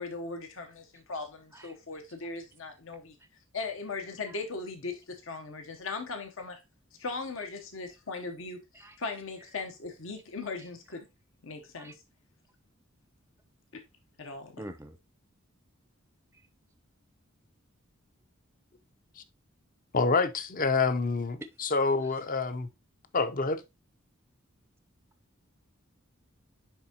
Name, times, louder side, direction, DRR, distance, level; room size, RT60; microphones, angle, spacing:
voice 1, 0.0-3.1 3.5-6.6 7.0-8.6 9.0-11.0 11.4-12.0 14.2-14.5, left 3 dB, 70° left, 1.0 m, -38 dB
voice 2, 14.6-15.0 21.4-21.5, right 1 dB, 10° right, 0.5 m, -44 dB
voice 3, 19.9-22.7 23.1-23.6, left 4 dB, 45° left, 0.7 m, -27 dB
10.0 x 3.6 x 2.8 m
head